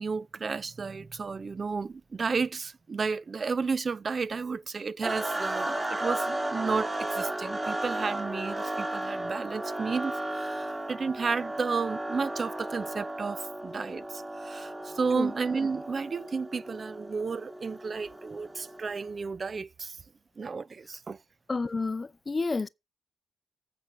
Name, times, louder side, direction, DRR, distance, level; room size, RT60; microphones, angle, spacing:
voice 1, 0.0-20.0 20.4-21.2, right 4 dB, 40° right, 0.4 m, -32 dB
sound 1, 5.0-19.1, right 1 dB, 20° right, 1.9 m, -34 dB
voice 2, 21.5-22.7, left 3 dB, 35° left, 0.5 m, -30 dB
8.6 x 5.0 x 5.5 m
supercardioid pair, 65°, 0 cm